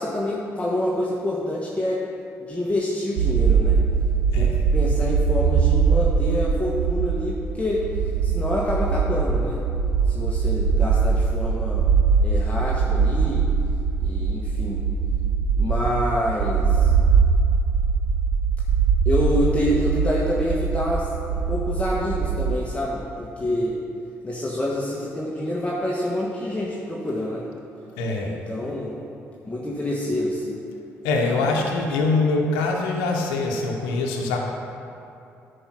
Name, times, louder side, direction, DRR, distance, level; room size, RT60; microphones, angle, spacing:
voice 1, 0.0-2.0 2.4-3.8 4.3-7.9 8.2-9.6 10.1-11.9 12.2-13.5 14.0-14.8 15.6-16.9 19.0-23.8 24.2-27.5 28.2-29.0 29.4-30.6 31.3-31.5, left 1 dB, 20° left, -5 dB, 1.5 m, -27 dB
sound 1, 3.2-22.6, right 5 dB, 85° right, 0.6 m, -22 dB
voice 2, 28.0-28.4 31.0-34.4, left 3 dB, 90° left, 0 dB, 0.9 m, -23 dB
10.0 x 5.1 x 5.9 m, 2.7 s
supercardioid pair, 55°, 6 cm